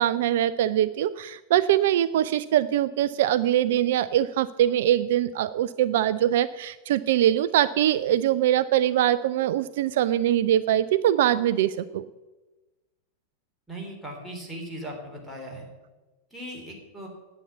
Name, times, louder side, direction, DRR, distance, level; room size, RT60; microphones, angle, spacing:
voice 1, 0.0-12.1, right 12 dB, 55° right, 15 dB, 0.3 m, -23 dB
voice 2, 13.7-15.7 16.3-17.1, right 1 dB, ahead, -3 dB, 3.6 m, -38 dB
9.8 x 8.2 x 8.2 m, 1.2 s
figure-of-eight pair, 90°, 0 cm